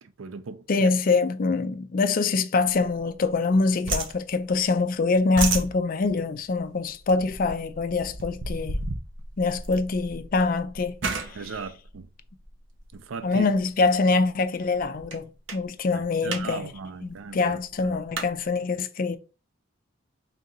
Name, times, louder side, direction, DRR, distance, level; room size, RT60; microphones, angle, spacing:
voice 1, 0.0-0.9 11.3-12.1 12.9-13.5 15.9-18.0, right 5 dB, 90° right, 0.5 m, -38 dB
voice 2, 0.7-8.8 9.4-11.0 11.3-11.4 13.2-16.7 17.0-19.2, left 3 dB, 45° left, 0.4 m, -24 dB
sound 1, 2.6-3.6 3.8-4.8 5.1-12.9 13.6-13.9 14.2-14.3 14.6-15.2 15.5-15.7 16.0-16.5 16.7-16.8 17.0-18.3, right 3 dB, 65° right, 0.8 m, -33 dB
3.6 x 2.8 x 3.8 m
head